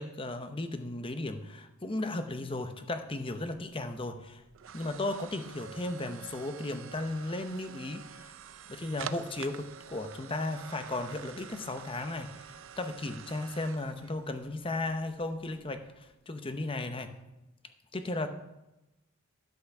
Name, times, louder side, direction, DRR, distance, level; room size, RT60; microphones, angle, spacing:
voice 1, 0.0-4.4 4.7-8.3 8.7-17.1 17.9-18.3, left 2 dB, 25° left, 8 dB, 0.7 m, -35 dB
sound 1, 3.6-16.1, right 8 dB, 60° right, 0.4 m, -48 dB
12.0 x 5.7 x 5.8 m, 0.98 s
head